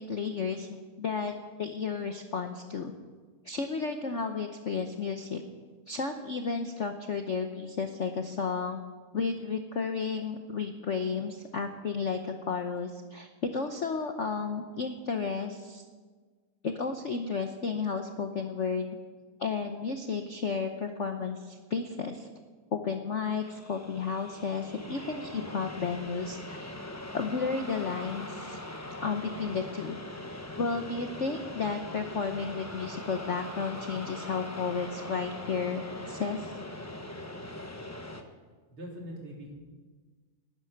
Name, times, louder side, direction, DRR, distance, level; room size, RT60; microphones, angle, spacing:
voice 1, 0.0-2.9 3.4-5.4 5.9-8.8 9.1-15.8 16.6-19.0 19.4-22.3 22.7-26.7 27.1-28.6 29.0-30.0 30.6-36.5, left 5 dB, 60° left, 5 dB, 0.8 m, -33 dB
sound 1, 23.4-38.2, left 1 dB, 20° left, 0.4 m, -41 dB
voice 2, 38.7-39.5, equal, 75° right, -2 dB, 4.3 m, -42 dB
12.5 x 9.7 x 9.9 m, 1.4 s
omnidirectional pair, 2.4 m